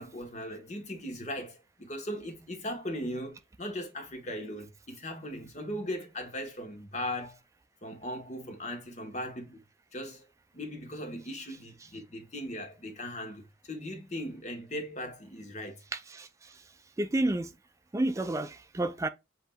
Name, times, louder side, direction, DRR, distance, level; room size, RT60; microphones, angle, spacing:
voice 1, 0.0-7.4 7.8-9.6 9.9-10.2 10.5-15.8, left 1 dB, 40° left, 1.1 m, -38 dB
voice 2, 17.0-17.5 17.9-19.1, right 1 dB, 15° right, 0.3 m, -29 dB
7.6 x 2.7 x 2.2 m
head